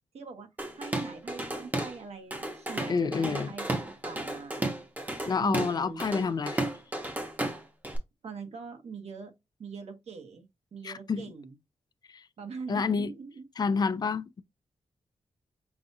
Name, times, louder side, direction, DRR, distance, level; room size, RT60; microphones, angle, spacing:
voice 1, 0.1-0.5 0.7-4.7 5.4-6.0 8.2-9.3 9.6-10.5 10.7-11.5 12.4-13.5, right 5 dB, 70° right, 1.3 m, -42 dB
Drum kit / Drum, 0.6-2.0 2.3-8.0, right 1 dB, 15° right, 0.9 m, -33 dB
voice 2, 2.9-3.5 5.3-6.6 10.8-11.2 12.1-12.2 12.7-13.1 13.6-14.4, left 5 dB, 35° left, 0.3 m, -29 dB
6.0 x 2.5 x 2.7 m
wide cardioid pair, 160°, 11 cm